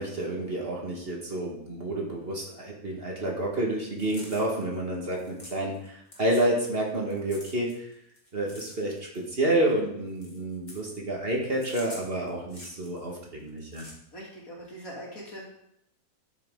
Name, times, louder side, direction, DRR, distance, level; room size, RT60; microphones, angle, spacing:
voice 1, 0.0-7.9 8.3-13.8, right 1 dB, 40° right, -1 dB, 2.0 m, -29 dB
sound 1, 3.8-5.9 6.1-6.8 7.1-9.7 10.1-10.9 11.5-13.1 13.5-13.9, left 1 dB, 30° left, 2.4 m, -47 dB
voice 2, 14.1-15.4, equal, 60° left, -4 dB, 3.2 m, -41 dB
12.0 x 6.6 x 3.9 m, 0.77 s
omnidirectional pair, 1.6 m